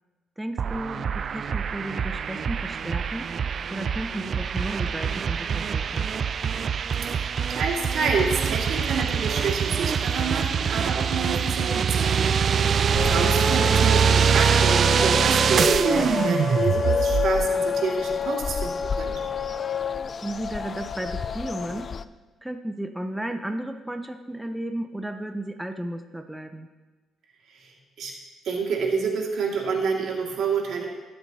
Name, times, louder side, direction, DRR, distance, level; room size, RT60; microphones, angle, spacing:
voice 1, 0.4-3.2 3.7-6.1 20.2-21.9 22.4-26.7, right 1 dB, 5° right, 6 dB, 0.8 m, -34 dB
sound 1, 0.6-17.5, right 7 dB, 50° right, 0.3 m, -24 dB
voice 2, 7.0-19.1 27.6-27.7 28.0-28.1 28.4-30.9, right 4 dB, 75° right, 0 dB, 2.2 m, -28 dB
sound 2, 12.9-22.0, left 6 dB, 45° left, 0.4 m, -29 dB
21.0 x 7.9 x 2.9 m, 1.2 s
cardioid pair, 90°, 0 cm